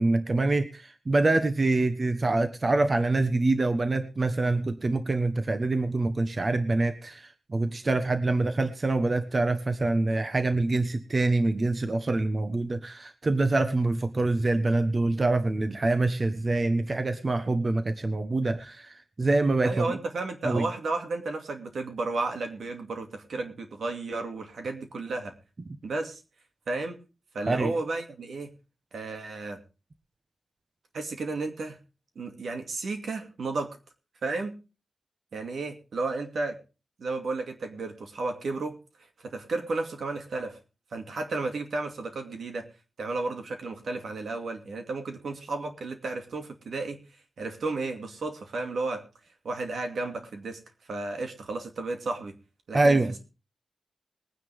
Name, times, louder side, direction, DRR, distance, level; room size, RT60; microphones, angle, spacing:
voice 1, 0.0-19.9 20.4-20.7 27.5-27.7 52.7-53.1, right 2 dB, 40° right, 9 dB, 1.2 m, -25 dB
voice 2, 19.6-25.3 25.8-26.2 26.7-27.0 27.3-28.5 28.9-29.6 30.9-31.8 32.2-33.8 34.2-34.5 35.3-36.6 37.0-38.8 39.2-40.6 40.9-42.7 43.0-47.0 47.4-49.1 49.4-50.6 50.9-52.4 52.7-53.2, right 3 dB, 85° right, 5 dB, 2.5 m, -33 dB
21.0 x 9.7 x 3.6 m, 0.33 s
wide cardioid pair, 85°, 0 cm